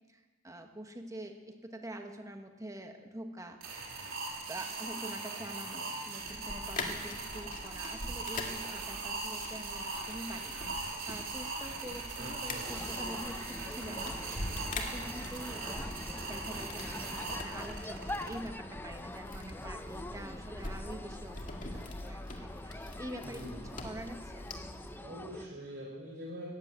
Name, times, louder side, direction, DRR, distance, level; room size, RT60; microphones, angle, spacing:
voice 1, 0.1-3.6 4.5-24.4, right 1 dB, 15° right, 4 dB, 1.5 m, -46 dB
sound 1, 3.6-18.3, right 3 dB, 85° right, 3.5 m, -40 dB
sound 2, 6.2-25.0, left 2 dB, 40° left, 2.0 m, -44 dB
voice 2, 12.2-12.8 23.2-23.8 25.0-26.5, equal, 50° right, -4 dB, 4.1 m, -45 dB
sound 3, 12.6-25.5, left 1 dB, 10° left, 0.7 m, -44 dB
15.0 x 10.5 x 9.1 m, 1.4 s
head